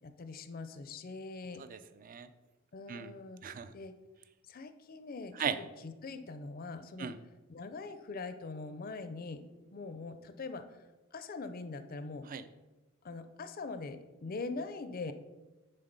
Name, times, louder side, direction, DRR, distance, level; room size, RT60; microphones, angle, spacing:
voice 1, 0.0-1.7 2.7-3.4 3.7-3.9 4.5-7.1 7.5-9.4 9.7-10.6 11.1-12.3 13.0-15.1, left 3 dB, 45° left, 10 dB, 0.5 m, -42 dB
voice 2, 1.7-2.3 2.9-3.1 3.4-3.7 5.4-5.6 7.0-7.2 12.3-12.4, right 7 dB, 40° right, 12 dB, 0.4 m, -37 dB
9.9 x 3.7 x 5.2 m, 1.1 s
head